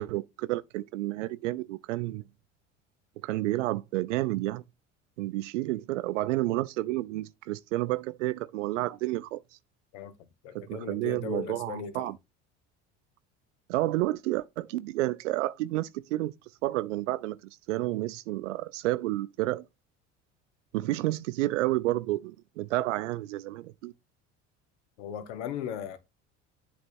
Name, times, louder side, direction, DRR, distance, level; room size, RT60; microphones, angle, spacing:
voice 1, 0.0-2.2 3.2-4.6 5.2-9.4 10.5-12.2 13.7-16.3 16.6-17.4 17.7-19.7 20.7-23.9, right 17 dB, 85° right, 0.5 m, -30 dB
voice 2, 9.9-12.1 25.0-26.0, left 8 dB, 75° left, 1.1 m, -37 dB
8.0 x 3.3 x 4.2 m
hypercardioid pair, 75°, 36 cm